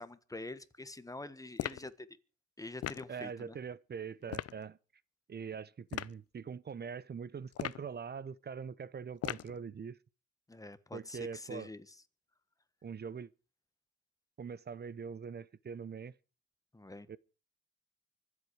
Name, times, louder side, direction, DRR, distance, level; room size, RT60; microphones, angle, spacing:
voice 1, 0.0-2.2 2.6-3.5 10.5-11.9 16.7-17.2, left 2 dB, 10° left, 1.4 m, -46 dB
sound 1, 1.6-1.9 2.8-3.1 4.3-4.6 5.9-6.2 7.5-7.9 9.2-9.6, left 12 dB, 55° left, 0.6 m, -38 dB
voice 2, 3.1-4.8 5.3-10.0 10.9-11.7 12.8-13.3 14.4-16.1 17.1-17.2, right 6 dB, 35° right, 0.8 m, -43 dB
25.0 x 8.4 x 4.8 m
cardioid pair, 90°, 30 cm